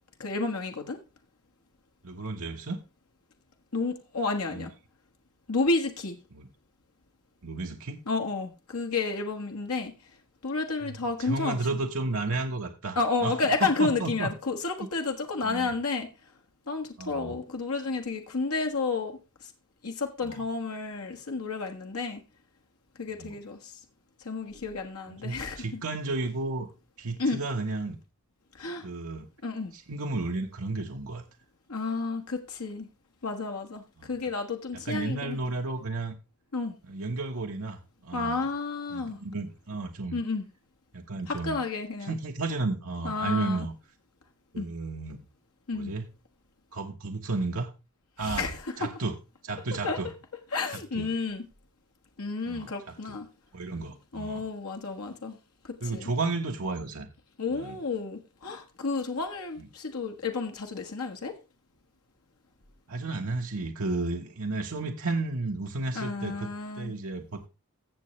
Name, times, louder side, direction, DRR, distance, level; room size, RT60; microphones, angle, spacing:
voice 1, 0.2-1.0 3.7-4.7 5.5-6.2 8.1-9.9 10.4-11.6 12.9-16.1 16.7-19.2 19.8-22.2 23.0-23.7 24.2-25.8 27.2-27.4 28.6-28.9 29.4-29.7 31.7-32.9 33.2-35.4 36.5-36.7 38.1-39.2 40.1-40.5 41.3-42.2 43.0-43.7 44.6-44.7 45.7-45.9 48.2-48.9 49.8-50.0 50.5-51.4 52.2-53.3 54.1-55.4 55.6-56.1 57.4-61.3 65.9-66.9, left 3 dB, 80° left, 1.3 m, -31 dB
voice 2, 2.0-2.8 4.5-4.7 6.3-6.5 7.4-8.0 10.8-14.3 15.4-15.7 17.0-17.4 20.2-20.5 23.2-23.4 25.1-26.7 27.0-28.0 28.8-29.3 29.7-31.2 34.0-34.1 34.8-36.1 36.8-38.5 38.9-40.2 40.9-41.6 42.0-43.7 44.5-45.2 45.7-46.1 46.7-47.7 48.2-48.5 48.8-49.1 49.4-50.1 50.9-51.1 52.5-53.2 53.5-54.4 55.8-57.1 57.5-57.8 59.6-59.7 62.9-67.5, right 3 dB, 75° right, 1.2 m, -33 dB
15.5 x 6.9 x 3.2 m
head